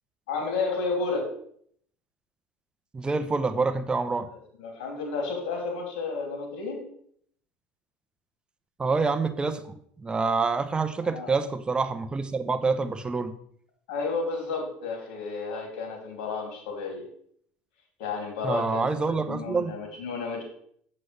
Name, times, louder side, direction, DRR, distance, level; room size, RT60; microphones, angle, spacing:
voice 1, 0.3-1.3 4.3-6.8 11.0-11.3 13.9-17.1 18.0-20.4, left 4 dB, 90° left, 1 dB, 2.7 m, -32 dB
voice 2, 2.9-4.3 8.8-13.3 18.4-19.7, right 4 dB, 20° right, 10 dB, 0.7 m, -27 dB
7.7 x 7.6 x 3.3 m, 0.64 s
supercardioid pair, 110°, 5 cm